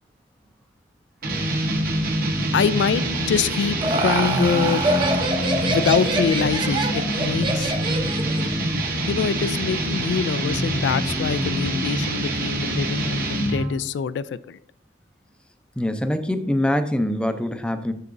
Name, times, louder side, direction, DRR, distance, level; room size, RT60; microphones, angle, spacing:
sound 1, 1.2-13.8, right 1 dB, 55° right, 1.0 m, -25 dB
voice 1, 2.5-4.8 5.7-7.7 9.1-14.6, left 6 dB, 80° left, 16 dB, 0.3 m, -24 dB
Laughter, 3.4-8.5, right 2 dB, 30° right, 0.7 m, -25 dB
voice 2, 15.8-17.9, left 1 dB, 5° left, 8 dB, 0.5 m, -24 dB
7.0 x 6.7 x 2.6 m, 0.68 s
head